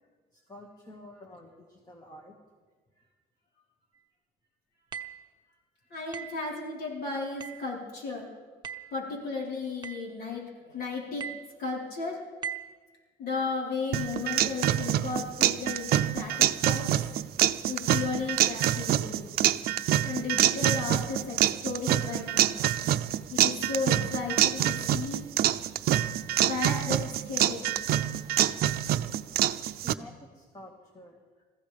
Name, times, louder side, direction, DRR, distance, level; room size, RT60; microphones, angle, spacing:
voice 1, 0.3-2.4 29.8-31.2, equal, 20° left, 2 dB, 2.0 m, -49 dB
sound 1, 4.9-5.3 6.1-6.5 7.4-7.7 8.6-9.0 9.8-10.1 11.2-11.5 12.4-12.8, right 8 dB, 25° right, 1.0 m, -39 dB
voice 2, 5.9-8.3 8.9-11.2 11.6-12.2 13.2-16.3 16.6-17.1 17.7-19.3 20.0-22.6 23.3-25.3 26.4-27.7, left 4 dB, 70° left, -3 dB, 4.5 m, -34 dB
sound 2, 13.9-29.9, right 12 dB, 65° right, 0.6 m, -26 dB
27.0 x 15.0 x 3.5 m, 1.5 s
cardioid pair, 110°, 17 cm